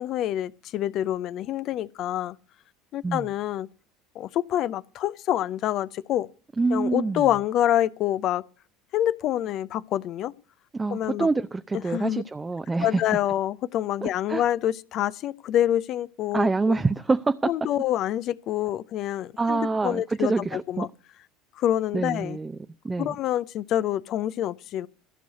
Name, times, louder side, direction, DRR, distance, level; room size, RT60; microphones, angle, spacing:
voice 1, 0.0-2.4 2.9-3.7 4.1-6.3 6.7-8.4 8.9-10.3 10.9-11.3 11.7-12.2 12.8-16.8 17.4-20.9 21.6-22.4 23.0-24.9, left 12 dB, 50° left, 0.6 m, -27 dB
voice 2, 6.6-7.2 10.7-13.0 14.0-14.4 16.3-17.5 19.4-20.9 21.9-22.6 22.8-23.1, right 3 dB, 15° right, 0.6 m, -26 dB
15.5 x 6.3 x 7.9 m
figure-of-eight pair, 70°, 0 cm